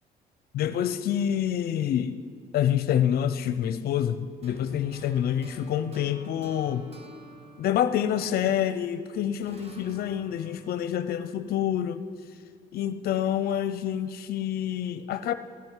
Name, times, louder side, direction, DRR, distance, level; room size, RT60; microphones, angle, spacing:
voice 1, 0.5-2.2 2.5-6.9 7.6-12.0 12.7-15.3, left 10 dB, 65° left, 12 dB, 0.6 m, -27 dB
sound 1, 4.4-9.0 9.4-12.5, right 1 dB, 35° right, 1.8 m, -51 dB
15.5 x 9.2 x 9.8 m, 2.1 s
cardioid pair, 110°, 17 cm